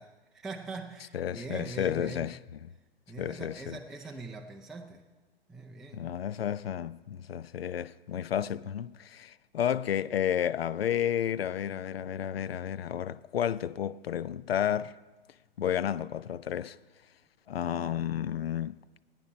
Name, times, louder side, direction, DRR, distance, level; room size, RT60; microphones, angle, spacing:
voice 1, 0.0-2.3 3.1-5.0 5.5-6.1, right 3 dB, ahead, 0.5 m, -42 dB
voice 2, 1.1-2.4 3.2-3.8 5.9-15.0 15.6-16.8 17.5-18.8, left 9 dB, 75° left, 0.5 m, -31 dB
21.5 x 9.1 x 4.2 m
figure-of-eight pair, 115°, 30 cm